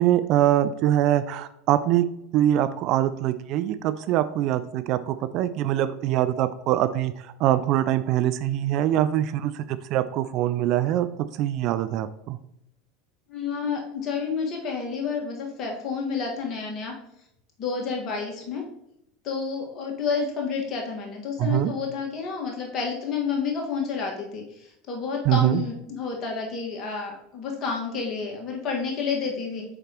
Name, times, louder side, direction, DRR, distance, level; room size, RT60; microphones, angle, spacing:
voice 1, 0.0-2.1 2.3-11.1 11.4-12.4 21.4-21.7 25.2-25.6, right 12 dB, 50° right, 12 dB, 0.3 m, -23 dB
voice 2, 13.3-16.9 17.6-18.6 19.2-29.7, left 5 dB, 40° left, 0 dB, 1.7 m, -30 dB
7.3 x 4.9 x 3.0 m, 0.79 s
figure-of-eight pair, 75°, 0 cm